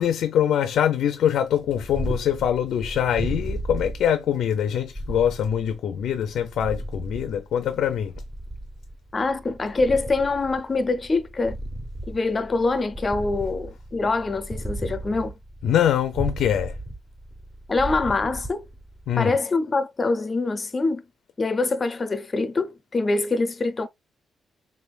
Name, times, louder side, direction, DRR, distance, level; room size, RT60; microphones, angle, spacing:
voice 1, 0.0-8.2 15.6-16.8 19.1-19.4, left 9 dB, 80° left, 0.4 m, -23 dB
Purr, 1.5-19.2, right 1 dB, 15° right, 0.8 m, -35 dB
voice 2, 9.1-11.6 12.1-15.3 17.7-18.6 19.2-21.0 21.4-23.9, left 3 dB, 30° left, 0.5 m, -24 dB
3.7 x 3.4 x 2.3 m
cardioid pair, 120°, 0 cm